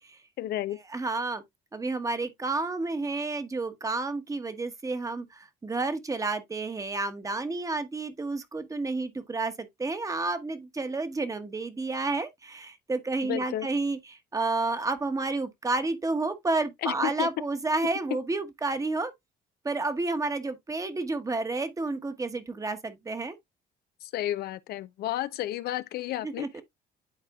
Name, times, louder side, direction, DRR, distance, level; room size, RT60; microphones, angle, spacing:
voice 1, 0.4-0.8 13.2-13.7 16.8-17.3 24.0-26.6, left 13 dB, 70° left, 0.6 m, -32 dB
voice 2, 0.9-1.4 1.7-19.1 19.6-23.3 26.2-26.6, right 3 dB, 20° right, 1.2 m, -30 dB
11.0 x 4.2 x 2.3 m
cardioid pair, 110°, 17 cm